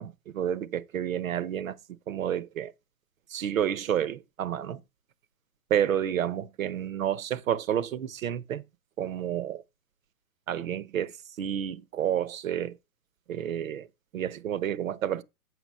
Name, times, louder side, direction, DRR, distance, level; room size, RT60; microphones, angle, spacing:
voice 1, 0.0-2.7 3.3-4.8 5.7-8.6 9.0-9.6 10.5-12.8 13.3-13.9 14.1-15.2, right 10 dB, 65° right, 0.9 m, -30 dB
8.0 x 5.9 x 5.5 m
hypercardioid pair, 145°, 44 cm